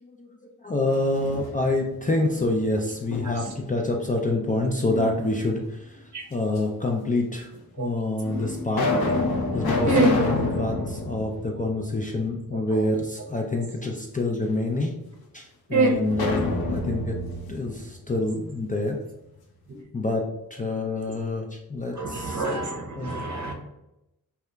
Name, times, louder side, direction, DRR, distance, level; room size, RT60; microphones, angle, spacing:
voice 1, 0.0-6.0 6.3-7.5 7.8-8.9 9.5-14.9 15.3-17.2 17.5-19.0 19.9-22.4 23.0-23.2, left 2 dB, 25° left, 1 dB, 0.3 m, -27 dB
sound 1, 0.9-1.9 2.4-3.6 4.9-5.7 6.6-6.7 7.5-7.6 8.2-12.3 12.7-12.8 16.1-18.9, left 2 dB, 75° left, 0.6 m, -29 dB
voice 2, 15.7-16.1 19.7-19.8 21.9-23.5, right 2 dB, 50° right, 1 dB, 0.7 m, -25 dB
2.7 x 2.2 x 2.2 m, 0.88 s
cardioid pair, 50°, 37 cm